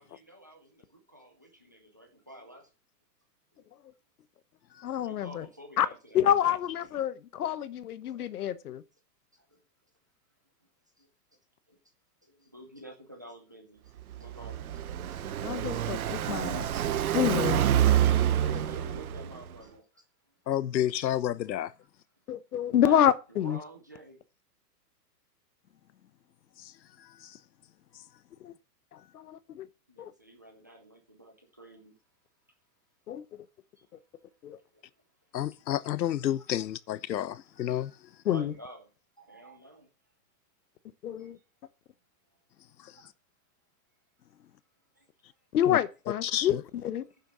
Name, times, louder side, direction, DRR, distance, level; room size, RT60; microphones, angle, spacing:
voice 1, 0.0-2.7 3.5-3.7 5.0-6.6 8.8-8.9 9.3-9.6 11.0-11.1 11.7-11.8 12.2-14.6 17.6-20.0 22.7-23.0 23.3-24.2 29.9-31.9 33.8-33.9 34.5-34.8 38.2-38.9 39.2-39.9 41.2-41.3 42.9-43.1 45.0-45.1, equal, 10° right, 0.5 m, -50 dB
voice 2, 4.8-5.4 5.8-5.9 6.1-8.8 15.4-16.7 17.1-17.6 22.3-23.6 28.4-28.5 29.1-29.7 30.0-30.1 33.1-33.2 34.4-34.6 38.3-38.5 41.0-41.4 45.5-46.5 46.8-47.0, left 10 dB, 60° left, 1.0 m, -27 dB
Car passing by, 14.0-19.5, right 11 dB, 60° right, 1.1 m, -27 dB
voice 3, 20.5-21.7 26.6-27.4 27.9-28.0 35.3-38.1 42.8-43.1 45.7-45.8 46.2-46.6, left 11 dB, 90° left, 1.0 m, -31 dB
9.6 x 6.8 x 6.0 m
hypercardioid pair, 175°, 50 cm